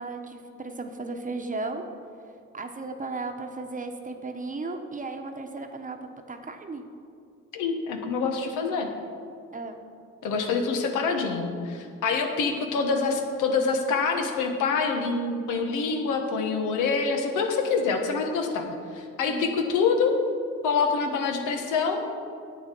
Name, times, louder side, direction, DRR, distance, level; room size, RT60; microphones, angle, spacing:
voice 1, 0.0-1.8 2.5-6.8 9.5-9.8 19.3-19.6, right 3 dB, 25° right, 5 dB, 1.0 m, -35 dB
voice 2, 7.5-8.9 10.2-20.1 20.6-22.0, left 5 dB, 85° left, 4 dB, 1.2 m, -26 dB
10.5 x 8.0 x 4.6 m, 2.3 s
cardioid pair, 90°, 30 cm